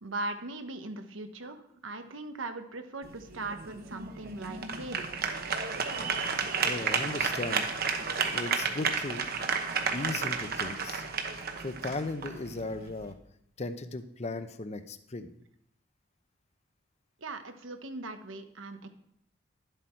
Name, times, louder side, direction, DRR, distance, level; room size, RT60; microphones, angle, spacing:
voice 1, 0.0-5.1 17.2-18.9, right 2 dB, 85° right, 7 dB, 1.1 m, -39 dB
sound 1, 3.0-13.1, right 5 dB, 50° right, 1.1 m, -32 dB
voice 2, 6.6-7.6 8.2-9.3 9.9-11.1 11.6-13.2 13.6-15.3, left 2 dB, 35° left, 10 dB, 0.7 m, -36 dB
11.5 x 7.9 x 4.5 m, 0.73 s
head